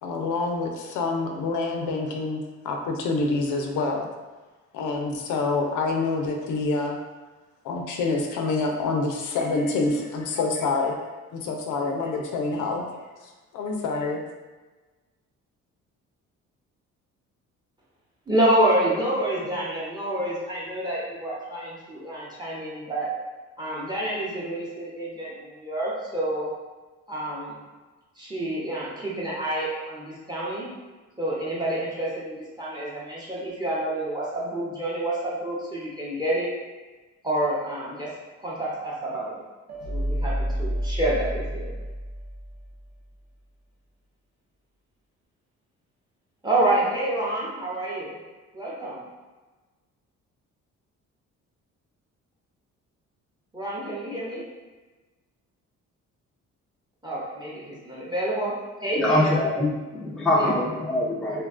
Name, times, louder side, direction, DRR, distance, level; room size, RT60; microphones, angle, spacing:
voice 1, 0.0-4.1 4.7-7.0 7.6-11.0 11.3-12.8 13.2-14.2, left 3 dB, 80° left, 2 dB, 0.5 m, -27 dB
voice 2, 18.3-23.1 23.6-26.5 27.1-27.6 28.2-30.7 31.2-36.5 37.2-38.1 38.4-39.4 39.9-41.7 46.4-48.2 48.5-49.0 53.5-54.4 57.0-59.4 60.3-60.5, right 1 dB, 15° right, -6 dB, 0.8 m, -28 dB
sound 1, 39.7-42.9, equal, 60° right, 0.6 m, -30 dB
voice 3, 58.9-61.4, left 1 dB, ahead, -5 dB, 0.4 m, -24 dB
2.6 x 2.2 x 2.4 m, 1.2 s
cardioid pair, 90°, 30 cm